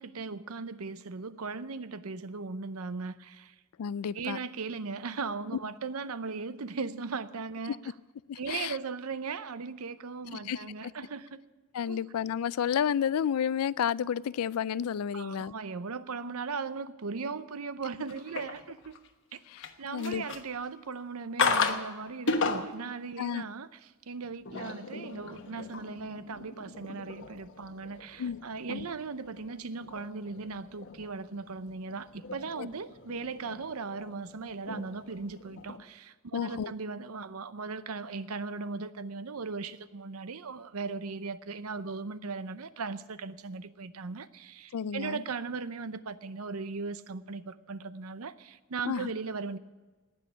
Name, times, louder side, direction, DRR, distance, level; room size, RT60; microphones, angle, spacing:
voice 1, 0.0-3.6 4.1-7.9 8.4-11.4 11.9-12.1 15.1-19.0 19.3-19.4 19.8-49.6, right 4 dB, 80° right, 14 dB, 0.7 m, -38 dB
voice 2, 3.8-4.4 8.3-8.8 10.3-10.6 11.7-15.5 19.5-19.6 19.9-20.2 23.2-23.4 28.2-28.4 28.7-28.9 32.6-32.7 36.3-36.7 44.7-45.2 48.9-49.1, left 8 dB, 90° left, 21 dB, 0.4 m, -31 dB
sound 1, 18.1-19.1 19.5-20.7 21.4-21.9 22.3-22.9 24.2-35.8, left 4 dB, 60° left, 1.1 m, -36 dB
18.5 x 6.4 x 9.9 m, 1.2 s
head